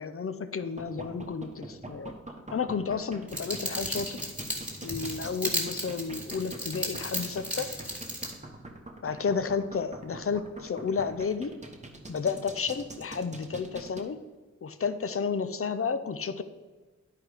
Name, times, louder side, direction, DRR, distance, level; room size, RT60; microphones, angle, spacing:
voice 1, 0.0-2.1 2.5-4.2 4.8-7.7 9.0-11.5 12.1-14.2 14.6-16.4, left 5 dB, 50° left, 12 dB, 0.6 m, -31 dB
sound 1, 0.6-14.0, right 2 dB, 25° right, 1.0 m, -43 dB
sound 2, 3.3-8.3, equal, 5° right, 1.9 m, -35 dB
10.5 x 4.7 x 4.9 m, 1.3 s
wide cardioid pair, 85°, 29 cm